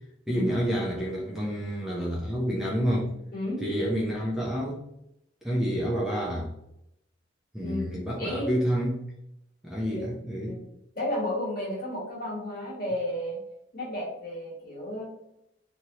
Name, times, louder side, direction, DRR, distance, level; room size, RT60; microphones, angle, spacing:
voice 1, 0.3-3.1 3.6-4.8 5.4-6.5 7.5-9.1 9.6-10.6, equal, ahead, -5 dB, 0.5 m, -29 dB
voice 2, 3.3-3.6 7.6-8.7 10.4-10.6 10.9-13.4 13.7-15.0, left 1 dB, 50° left, -4 dB, 1.2 m, -32 dB
3.0 x 2.7 x 2.7 m, 0.81 s
head